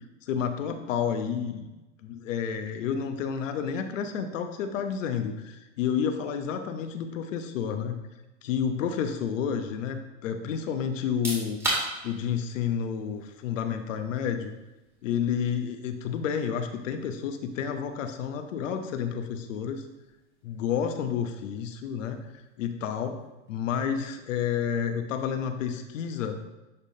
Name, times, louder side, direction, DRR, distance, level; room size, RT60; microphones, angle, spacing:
voice 1, 0.2-1.7 2.0-8.0 8.4-11.6 12.0-14.5 15.0-19.8 20.4-22.2 22.6-23.2 23.5-26.4, left 7 dB, 80° left, 7 dB, 0.9 m, -30 dB
sound 1, 11.0-23.6, right 1 dB, 5° right, 1.9 m, -41 dB
11.0 x 3.6 x 2.7 m, 1.1 s
supercardioid pair, 140°, 38 cm